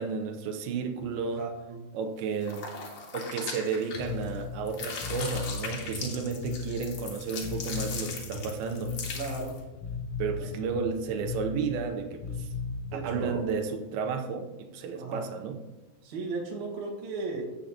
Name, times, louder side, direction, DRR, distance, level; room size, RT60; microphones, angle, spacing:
voice 1, 0.0-1.4 1.9-2.7 3.1-8.9 10.2-12.5 12.9-15.6, right 5 dB, 80° right, 5 dB, 2.7 m, -32 dB
voice 2, 1.3-1.9 9.1-9.6 10.4-10.5 12.9-13.4 14.9-15.3 16.0-17.6, right 3 dB, 55° right, -2 dB, 2.6 m, -36 dB
sound 1, 2.4-4.4 4.7-9.6, left 5 dB, 55° left, 1.9 m, -39 dB
Bass guitar, 4.0-13.5, left 4 dB, 75° left, 1.5 m, -37 dB
15.5 x 6.5 x 2.9 m, 1.1 s
omnidirectional pair, 4.4 m